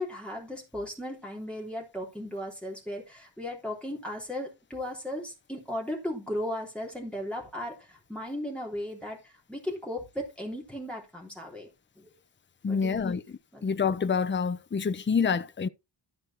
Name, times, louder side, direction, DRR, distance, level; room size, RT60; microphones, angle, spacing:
voice 1, 0.0-11.7 12.0-12.1 12.7-13.2 13.5-13.6, left 1 dB, ahead, 3.4 m, -36 dB
voice 2, 12.6-13.2 13.6-15.7, left 6 dB, 25° left, 0.5 m, -27 dB
13.0 x 5.0 x 4.3 m
wide cardioid pair, 160°, 49 cm